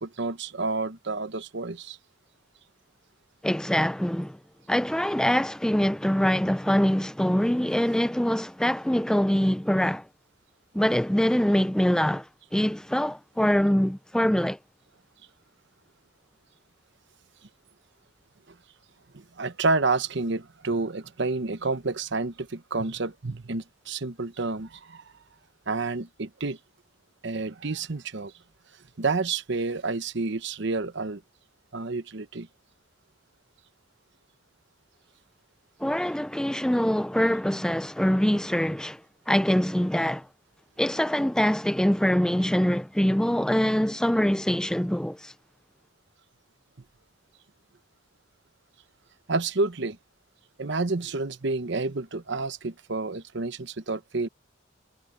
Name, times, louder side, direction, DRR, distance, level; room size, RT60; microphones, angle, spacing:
voice 1, 0.0-2.0 19.1-25.0 25.7-26.6 27.2-28.3 29.0-31.2 31.7-32.5 49.3-50.0 50.6-54.3, right 3 dB, 60° right, 1.0 m, -29 dB
voice 2, 3.4-4.4 4.7-10.1 10.7-12.3 12.5-14.6 35.8-39.0 39.3-40.3 40.8-45.3, equal, 5° left, 0.4 m, -24 dB
head